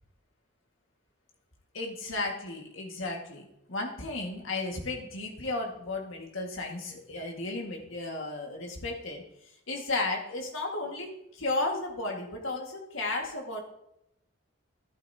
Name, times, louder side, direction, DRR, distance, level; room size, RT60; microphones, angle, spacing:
voice 1, 1.7-9.2 9.7-13.6, left 2 dB, 70° left, 1 dB, 1.9 m, -34 dB
12.5 x 12.0 x 2.9 m, 0.81 s
head